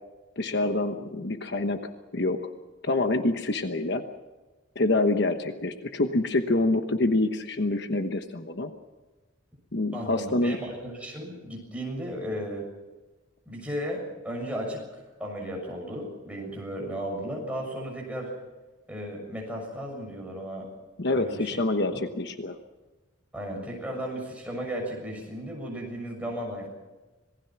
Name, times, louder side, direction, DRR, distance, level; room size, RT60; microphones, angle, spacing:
voice 1, 0.4-1.8 2.1-2.4 2.8-4.0 4.7-8.7 9.7-10.6 21.0-22.6, left 2 dB, 55° left, 7 dB, 1.1 m, -26 dB
voice 2, 9.9-12.7 13.5-18.3 18.9-20.7 21.1-21.5 21.9-22.0 23.3-26.7, equal, 5° right, -2 dB, 6.9 m, -35 dB
26.5 x 19.5 x 6.0 m, 1.2 s
head